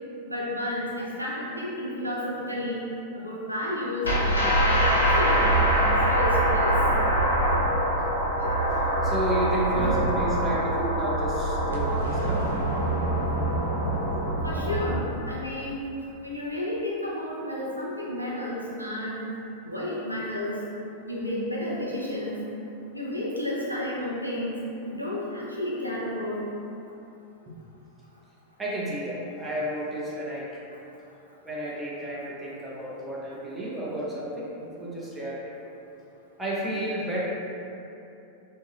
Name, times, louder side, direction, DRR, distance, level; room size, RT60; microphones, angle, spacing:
voice 1, 0.3-5.7 6.1-6.8 8.4-8.5 9.7-10.1 14.4-15.8 16.2-19.2 19.6-20.6 21.1-22.4 22.9-26.4, left 1 dB, 90° right, -5 dB, 0.5 m, -32 dB
sound 1, 4.0-15.0, right 1 dB, 75° left, 0.5 m, -24 dB
voice 2, 9.0-12.5 27.5-27.6 28.6-30.5 31.4-35.4 36.4-37.3, right 1 dB, 10° right, -7 dB, 0.7 m, -31 dB
3.3 x 2.1 x 3.3 m, 2.8 s
figure-of-eight pair, 90°, 0 cm